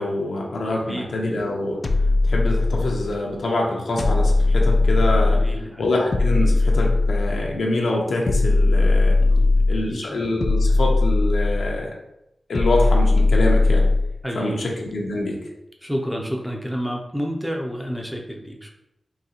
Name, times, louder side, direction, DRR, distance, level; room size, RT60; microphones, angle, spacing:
voice 1, 0.0-1.8 2.2-5.4 5.8-9.2 9.7-11.9 12.5-13.9 14.3-15.4, left 2 dB, 75° left, -1 dB, 0.7 m, -25 dB
voice 2, 0.7-1.1 5.3-5.9 9.2-10.2 14.2-14.6 15.8-18.7, equal, ahead, 0 dB, 0.5 m, -30 dB
sound 1, 1.8-3.2 4.0-5.6 6.1-7.5 8.3-9.9 10.4-11.8 12.5-14.2, left 2 dB, 50° left, 0.3 m, -18 dB
3.9 x 2.8 x 2.8 m, 0.86 s
wide cardioid pair, 90°, 0 cm